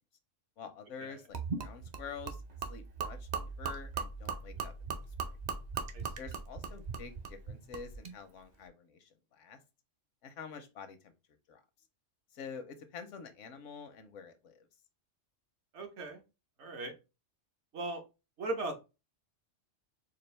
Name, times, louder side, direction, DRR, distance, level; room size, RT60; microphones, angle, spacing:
voice 1, 0.6-2.4 2.7-4.7 5.2-5.4 6.2-9.6 10.2-11.1 11.5-11.6 12.3-14.7, left 6 dB, 80° left, 1.0 m, -47 dB
Gurgling / Liquid, 1.3-8.2, right 5 dB, 45° right, 0.6 m, -39 dB
voice 2, 15.7-16.2 16.6-16.9 17.7-18.0 18.4-18.8, right 2 dB, 65° right, 1.1 m, -38 dB
4.3 x 2.4 x 3.2 m
omnidirectional pair, 1.3 m